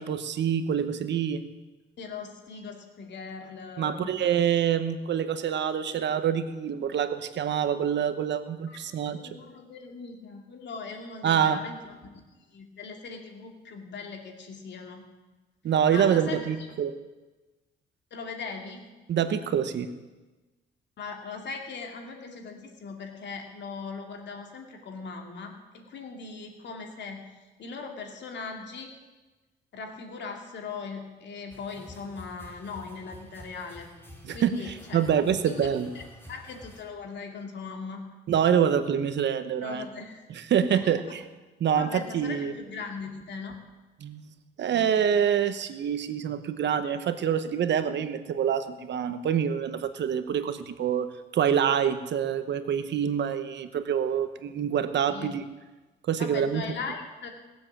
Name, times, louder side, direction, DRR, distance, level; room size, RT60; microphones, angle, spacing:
voice 1, 0.0-1.4 3.8-9.2 11.2-11.6 15.6-16.9 19.1-19.9 34.2-35.9 38.3-39.9 40.3-41.2 41.6-42.5 44.0-44.3 44.6-55.4 56.1-56.6, right 8 dB, 65° right, 10 dB, 1.1 m, -26 dB
voice 2, 2.0-4.1 8.7-11.8 12.5-15.1 15.9-16.7 18.1-18.9 21.0-27.3 27.6-28.9 29.7-33.9 34.3-35.0 35.4-35.7 35.9-36.0 36.3-38.0 39.6-40.4 40.7-41.2 41.7-43.6 55.1-55.4 56.2-57.3, left 4 dB, 65° left, 3 dB, 2.6 m, -39 dB
sound 1, 31.5-36.8, equal, 10° left, 3.3 m, -49 dB
19.0 x 7.7 x 7.3 m, 1.2 s
cardioid pair, 90°, 20 cm